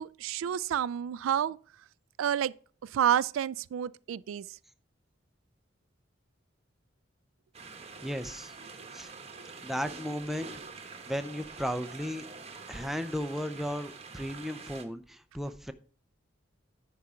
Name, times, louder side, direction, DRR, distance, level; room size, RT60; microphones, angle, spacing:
voice 1, 0.0-1.6 2.2-2.5 2.9-4.5, right 9 dB, 90° right, 0.3 m, -29 dB
sound 1, 7.5-14.9, right 4 dB, 30° right, 1.1 m, -46 dB
voice 2, 8.0-8.6 8.9-9.1 9.6-10.5 11.1-12.2 12.7-15.7, equal, ahead, 0.5 m, -35 dB
10.0 x 4.8 x 5.6 m
head